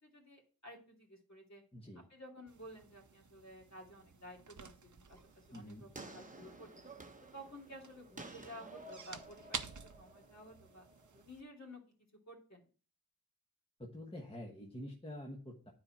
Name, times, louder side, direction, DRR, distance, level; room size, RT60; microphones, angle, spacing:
voice 1, 0.0-1.6 2.1-5.2 5.5-6.8 7.3-9.6 9.9-10.9 11.2-11.8 12.3-12.6, equal, 45° left, -1 dB, 2.6 m, -53 dB
voice 2, 1.7-2.1 5.5-5.9 13.8-15.7, left 1 dB, 15° left, 0 dB, 1.2 m, -47 dB
sound 1, 2.5-11.4, right 5 dB, 55° right, 0.7 m, -51 dB
sound 2, 5.1-11.2, right 2 dB, 20° right, 0.9 m, -54 dB
9.7 x 4.2 x 4.4 m, 0.38 s
wide cardioid pair, 70°, 37 cm